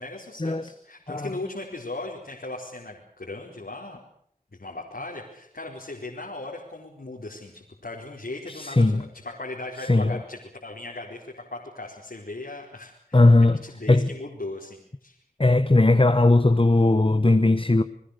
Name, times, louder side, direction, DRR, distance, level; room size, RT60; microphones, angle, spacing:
voice 1, 0.0-4.0 4.5-15.2, left 2 dB, 80° left, 4.6 m, -38 dB
voice 2, 8.5-9.0 9.8-10.2 13.1-13.6 13.9-14.1 15.4-17.8, left 2 dB, 35° left, 1.2 m, -18 dB
30.0 x 20.5 x 6.7 m
wide cardioid pair, 50°, 15 cm